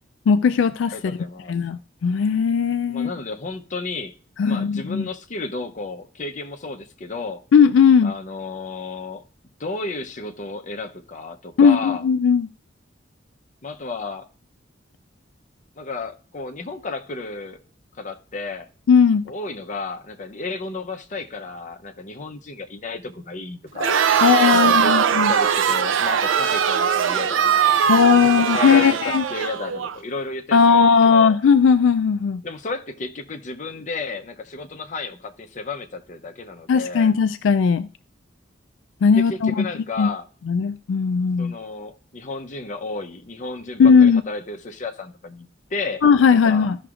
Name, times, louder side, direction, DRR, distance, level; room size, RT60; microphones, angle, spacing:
voice 1, 0.3-0.9 1.5-3.1 4.4-5.1 7.5-8.1 11.6-12.5 18.9-19.2 24.2-25.3 27.9-29.2 30.5-32.4 36.7-37.9 39.0-39.7 40.0-40.1 40.5-41.5 43.8-44.2 46.0-46.8, left 6 dB, 80° left, 0.3 m, -17 dB
voice 2, 0.9-1.5 2.9-4.2 4.5-7.4 8.0-9.2 9.6-12.0 13.6-14.3 15.8-17.6 18.0-18.7 19.3-24.1 24.5-25.0 25.3-31.4 32.4-37.1 39.2-40.3 41.4-46.0 46.3-46.7, left 3 dB, 40° left, 0.7 m, -33 dB
Crowd, 23.8-29.9, right 7 dB, 90° right, 0.5 m, -20 dB
14.5 x 5.9 x 2.4 m
head